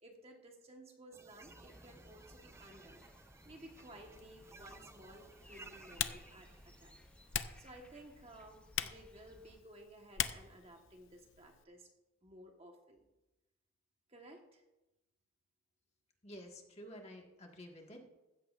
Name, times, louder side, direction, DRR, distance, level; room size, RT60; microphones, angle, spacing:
voice 1, 0.0-3.1 3.4-7.0 7.6-11.9 12.2-13.1 14.1-14.6, right 1 dB, 30° right, 2 dB, 1.3 m, -56 dB
sound 1, 1.1-8.1, right 3 dB, 10° right, 0.3 m, -59 dB
sound 2, 1.4-9.6, left 1 dB, 5° left, 0.8 m, -61 dB
Typing, 4.1-11.6, left 10 dB, 60° left, 0.6 m, -44 dB
voice 2, 16.2-18.0, equal, 30° left, 1 dB, 1.7 m, -51 dB
15.5 x 13.5 x 2.5 m, 1.0 s
head